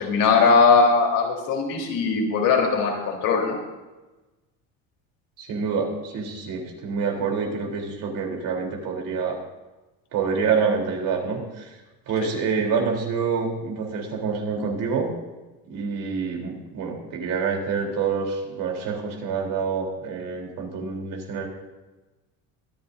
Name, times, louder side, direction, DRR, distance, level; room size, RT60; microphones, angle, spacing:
voice 1, 0.0-3.6 12.2-12.3, left 4 dB, 60° left, 0 dB, 3.7 m, -20 dB
voice 2, 5.4-9.4 10.1-11.7 12.1-15.1 15.7-21.5, right 5 dB, 60° right, 0 dB, 3.5 m, -27 dB
24.0 x 10.0 x 2.6 m, 1.1 s
cardioid pair, 120°, 37 cm